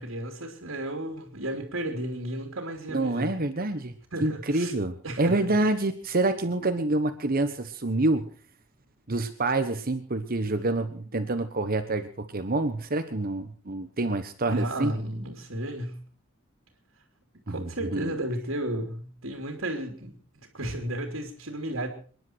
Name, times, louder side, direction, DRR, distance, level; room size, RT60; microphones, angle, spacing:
voice 1, 0.0-3.3 4.1-4.7 5.0-5.6 14.5-16.0 17.5-21.9, right 1 dB, 70° right, 3 dB, 3.1 m, -33 dB
voice 2, 2.9-3.9 4.2-8.3 9.1-14.9 17.5-18.1, right 2 dB, 45° right, 9 dB, 1.2 m, -27 dB
27.5 x 11.0 x 4.6 m, 0.41 s
head